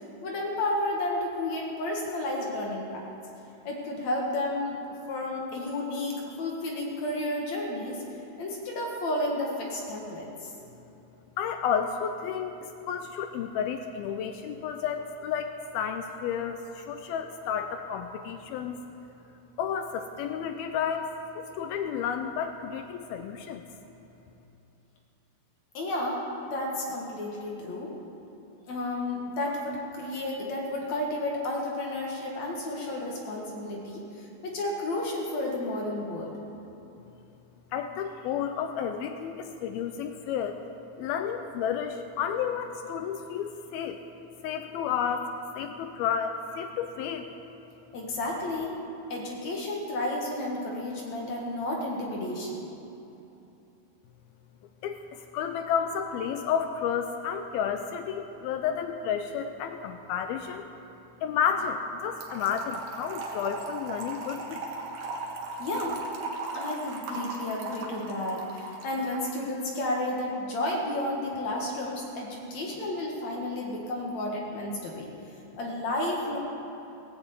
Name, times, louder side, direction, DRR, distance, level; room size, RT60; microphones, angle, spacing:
voice 1, 0.2-3.0 3.6-4.8 5.1-8.0 8.4-10.5 25.7-28.0 28.7-36.4 47.9-48.8 49.1-52.7 65.6-66.0 66.5-75.1 75.6-76.4, left 1 dB, 55° left, -2 dB, 2.4 m, -32 dB
voice 2, 11.4-18.8 19.6-23.7 37.7-40.6 41.0-44.0 44.4-47.3 54.8-60.7 61.2-64.6, left 7 dB, 85° left, 6 dB, 2.3 m, -31 dB
Trickle dribble / Fill (with liquid), 62.2-69.3, right 3 dB, 70° right, 3.4 m, -38 dB
17.0 x 9.3 x 8.3 m, 2.9 s
omnidirectional pair, 4.8 m